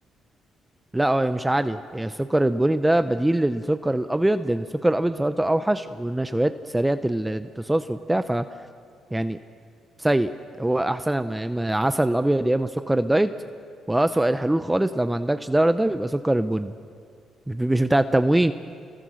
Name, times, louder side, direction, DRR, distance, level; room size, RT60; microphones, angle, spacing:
voice 1, 0.9-8.4 9.1-9.4 10.0-10.3 10.6-13.3 13.9-16.7 17.5-18.5, right 1 dB, 10° right, 10 dB, 0.7 m, -23 dB
28.5 x 21.0 x 6.4 m, 2.3 s
cardioid pair, 90°, 0 cm